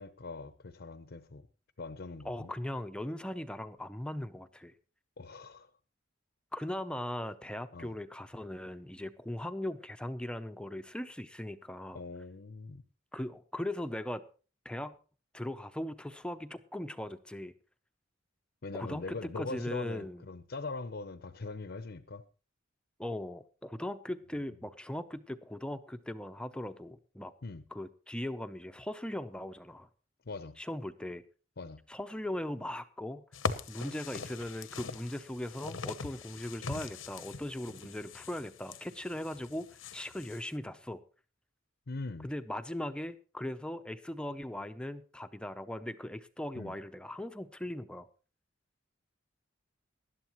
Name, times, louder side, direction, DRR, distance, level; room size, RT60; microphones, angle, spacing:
voice 1, 0.0-1.4 1.8-2.5 5.2-5.7 7.7-7.9 11.9-12.8 18.6-22.2 27.4-27.6 30.3-30.6 31.6-31.8 41.9-42.3 46.5-46.7, left 3 dB, 55° left, 0.7 m, -41 dB
voice 2, 2.2-4.7 6.5-12.0 13.1-14.2 14.6-14.9 15.3-17.5 18.7-20.2 23.0-27.3 27.7-29.9 30.6-31.2 31.9-33.2 33.7-41.0 42.2-48.1, left 1 dB, 5° left, 0.6 m, -39 dB
sound 1, 33.3-40.5, left 5 dB, 80° left, 0.9 m, -41 dB
19.0 x 11.5 x 3.0 m
head